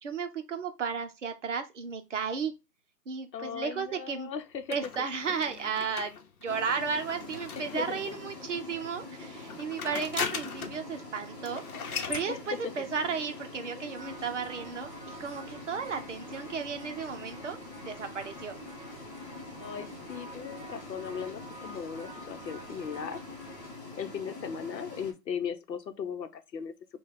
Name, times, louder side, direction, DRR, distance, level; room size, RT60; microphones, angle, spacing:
voice 1, 0.0-2.5 3.1-4.3 4.7-6.1 6.4-11.6 11.9-14.9 15.2-18.6, right 6 dB, 45° right, 0.7 m, -34 dB
voice 2, 3.3-4.8 5.3-5.4 7.6-8.1 12.3-12.4 12.6-12.7 13.8-13.9 19.6-23.2 24.0-26.7, left 7 dB, 90° left, 0.9 m, -38 dB
sound 1, 4.7-8.4 9.3-10.9 11.1-11.2 11.4-12.3, left 6 dB, 60° left, 0.8 m, -38 dB
sound 2, 6.5-25.1, left 2 dB, 25° left, 1.0 m, -45 dB
sound 3, 13.9-23.7, right 2 dB, 10° right, 1.1 m, -50 dB
4.6 x 2.3 x 3.6 m
hypercardioid pair, 165°, 49 cm